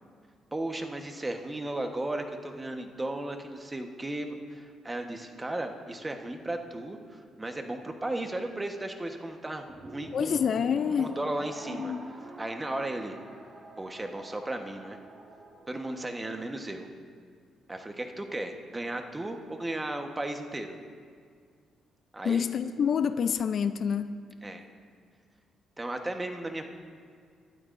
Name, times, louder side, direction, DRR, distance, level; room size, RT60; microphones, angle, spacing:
voice 1, 0.5-10.4 11.0-11.9 12.4-13.2 13.8-15.0 15.7-16.9 17.7-20.8 22.1-22.5 24.4-24.6 25.8-26.6, right 1 dB, 15° right, 4 dB, 1.2 m, -35 dB
sound 1, 9.7-16.2, right 2 dB, 30° right, 2.0 m, -47 dB
voice 2, 10.1-11.2 11.7-12.1 22.2-24.2, left 7 dB, 55° left, 12 dB, 0.4 m, -27 dB
23.0 x 12.0 x 2.6 m, 2.1 s
cardioid pair, 90°, 0 cm